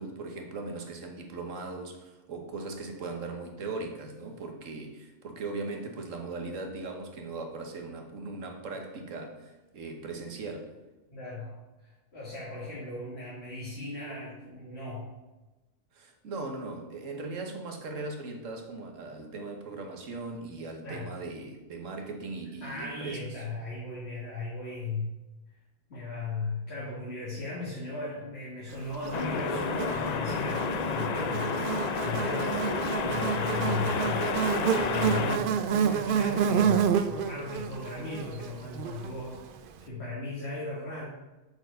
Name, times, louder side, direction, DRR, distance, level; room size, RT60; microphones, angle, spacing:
voice 1, 0.0-10.7 15.9-23.3, right 3 dB, 85° right, 3 dB, 1.5 m, -39 dB
voice 2, 11.1-15.1 20.8-21.1 22.6-25.1 25.9-32.5 33.0-34.3 34.6-41.0, left 2 dB, 55° left, -7 dB, 2.2 m, -37 dB
Buzz, 29.0-39.5, right 8 dB, 60° right, 0.6 m, -29 dB
sound 1, 29.1-35.4, left 5 dB, 75° left, 0.3 m, -31 dB
7.9 x 4.6 x 5.2 m, 1.1 s
omnidirectional pair, 1.3 m